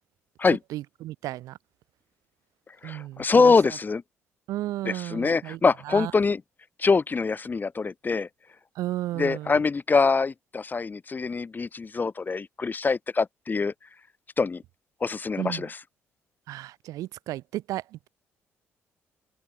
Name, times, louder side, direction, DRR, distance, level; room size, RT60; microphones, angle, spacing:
voice 1, 0.7-1.6 2.8-3.8 4.5-6.1 8.7-9.6 15.4-15.7 16.5-18.1, right 15 dB, 75° right, 1.7 m, -34 dB
voice 2, 2.8-4.0 4.8-6.4 6.8-8.3 9.2-13.7 14.4-14.6 15.0-15.8, left 4 dB, 30° left, 0.9 m, -24 dB
supercardioid pair, 60°, 6 cm